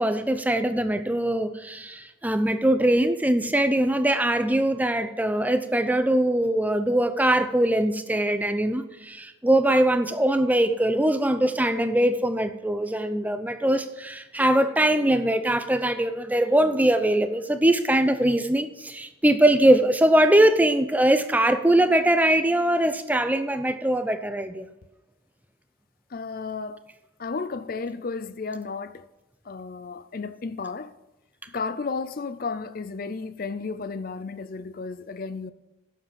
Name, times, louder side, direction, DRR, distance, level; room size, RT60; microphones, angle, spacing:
voice 1, 0.0-24.7, right 1 dB, 10° right, 0.5 m, -22 dB
voice 2, 26.1-26.8 27.2-29.1 29.4-30.9 31.5-35.5, left 4 dB, 45° left, 0.4 m, -33 dB
11.0 x 7.4 x 7.3 m
head